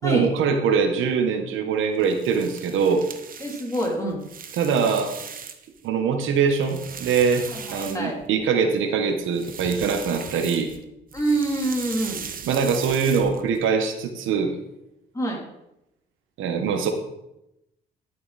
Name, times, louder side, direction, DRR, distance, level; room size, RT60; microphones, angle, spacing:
voice 1, 0.0-3.1 4.6-5.1 5.8-7.4 7.7-10.7 12.4-14.6 16.4-16.9, right 6 dB, 85° right, 5 dB, 1.2 m, -23 dB
sound 1, 1.9-5.8 6.2-8.4 9.2-10.8 11.1-13.6, right 7 dB, 45° right, 0.9 m, -39 dB
voice 2, 3.4-4.2 7.5-8.2 11.1-12.2 15.1-15.4, right 1 dB, 15° left, -2 dB, 3.3 m, -26 dB
11.0 x 6.6 x 4.2 m, 0.87 s
cardioid pair, 90°, 20 cm